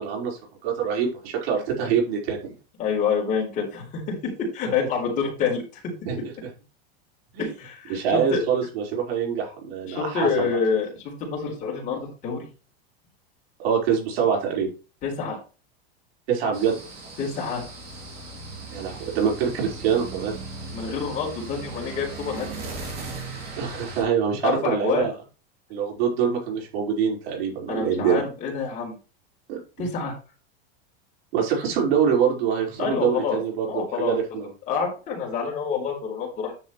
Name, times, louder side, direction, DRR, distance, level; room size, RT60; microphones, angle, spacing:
voice 1, 0.0-2.4 6.0-6.2 7.3-7.5 7.9-10.6 13.6-14.7 16.3-16.8 18.7-20.3 23.6-25.1 25.7-28.2 29.5-29.6 31.3-34.5, right 7 dB, 75° right, 0 dB, 5.0 m, -24 dB
voice 2, 2.8-4.1 4.5-5.8 7.4-8.4 9.9-12.5 15.0-15.4 17.2-17.6 20.7-22.6 24.4-25.1 27.7-28.9 29.8-30.1 32.8-33.4 33.7-34.2 34.7-36.5, left 5 dB, 25° left, -1 dB, 4.1 m, -27 dB
sound 1, 16.5-24.0, right 3 dB, 30° right, 3.1 m, -37 dB
10.0 x 7.0 x 3.2 m, 0.33 s
supercardioid pair, 175°, 30 cm